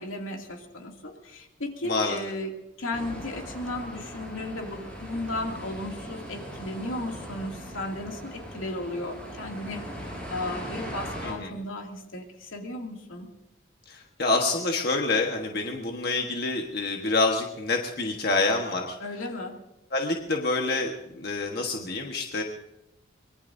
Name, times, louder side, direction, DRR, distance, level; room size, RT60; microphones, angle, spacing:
voice 1, 0.0-13.3 19.0-19.6, left 1 dB, 85° left, 1 dB, 2.6 m, -35 dB
voice 2, 1.8-2.2 11.2-11.5 13.9-19.0 19.9-22.4, left 3 dB, 50° left, 2 dB, 1.4 m, -27 dB
sound 1, 2.9-11.3, equal, 5° left, 6.3 m, -39 dB
24.0 x 22.0 x 2.7 m, 0.90 s
head